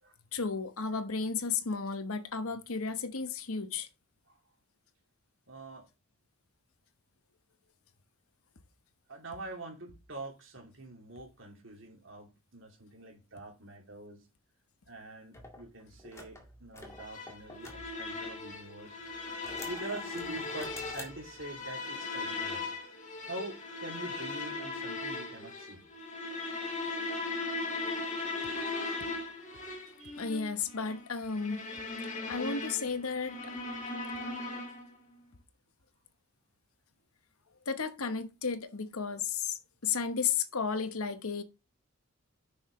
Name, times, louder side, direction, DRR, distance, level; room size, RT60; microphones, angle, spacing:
voice 1, 0.3-3.9 30.2-31.6 32.3-33.6 37.7-41.4, left 5 dB, 80° left, 1.1 m, -33 dB
voice 2, 5.5-5.9 9.1-14.3 14.9-19.0 19.7-22.6 23.3-25.8 30.0-30.2, right 2 dB, 60° right, 2.7 m, -45 dB
sound 1, 15.3-18.6 19.1-21.7, left 1 dB, 15° left, 1.9 m, -49 dB
sound 2, 16.9-35.0, left 3 dB, 35° left, 2.0 m, -38 dB
10.5 x 6.3 x 3.1 m
head